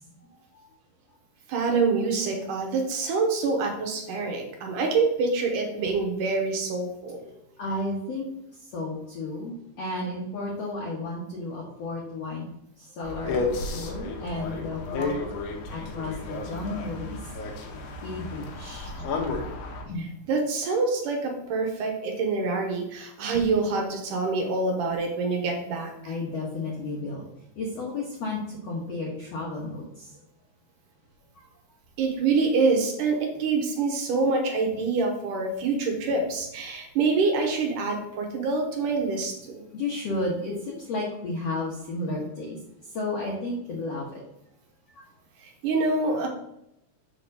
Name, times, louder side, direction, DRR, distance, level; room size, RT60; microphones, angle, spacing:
voice 1, 1.5-7.2 20.0-26.1 32.0-39.6 45.4-46.3, right 4 dB, 70° right, 2 dB, 2.2 m, -26 dB
voice 2, 7.6-8.2 8.7-12.5 13.0-13.4 13.7-15.1 15.7-17.2 18.0-18.9 19.9-20.1 26.0-27.2 27.6-28.4 28.6-29.8 39.7-42.6 42.9-44.1, left 2 dB, 65° left, -3 dB, 1.7 m, -32 dB
sound 1, 13.0-19.8, left 3 dB, 80° left, 3.1 m, -32 dB
7.0 x 3.8 x 6.4 m, 0.80 s
omnidirectional pair, 4.6 m